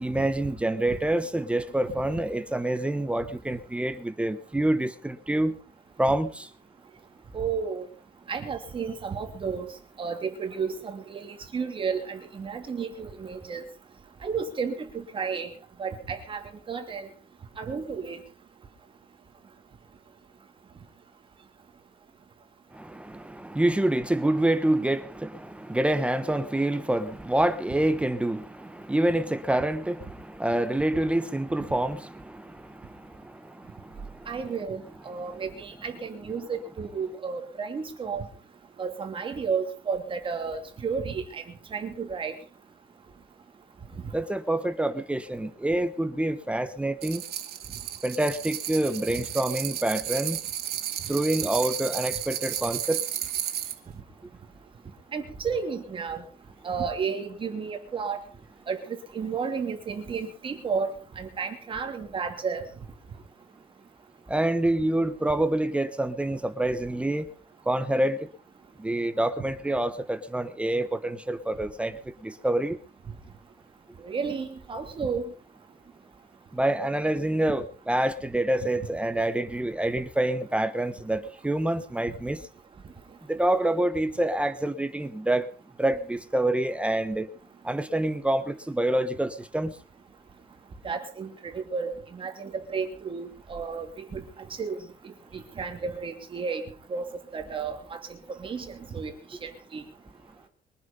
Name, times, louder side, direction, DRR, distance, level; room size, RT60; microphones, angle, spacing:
voice 1, 0.0-5.6 6.0-6.5 22.7-34.3 44.1-47.2 48.0-50.4 51.1-53.0 64.3-67.3 67.7-68.3 68.8-72.8 76.5-82.4 83.3-85.5 85.8-87.3 87.6-89.7, right 1 dB, 5° right, 1.0 m, -27 dB
voice 2, 7.3-7.9 8.3-9.7 10.0-13.6 14.2-15.5 15.8-17.1 17.6-18.2 34.3-38.3 38.8-41.4 41.7-42.3 55.1-56.2 56.6-58.2 58.7-58.8 59.1-62.6 74.0-75.3 82.1-82.2 90.8-94.2 94.6-94.8 95.3-96.6 96.9-97.1 97.3-98.0 98.4-99.1 99.4-99.8, right 5 dB, 30° right, 2.9 m, -32 dB
sound 1, 47.0-53.8, right 11 dB, 75° right, 2.4 m, -33 dB
23.0 x 10.5 x 5.4 m
cardioid pair, 170°, 16 cm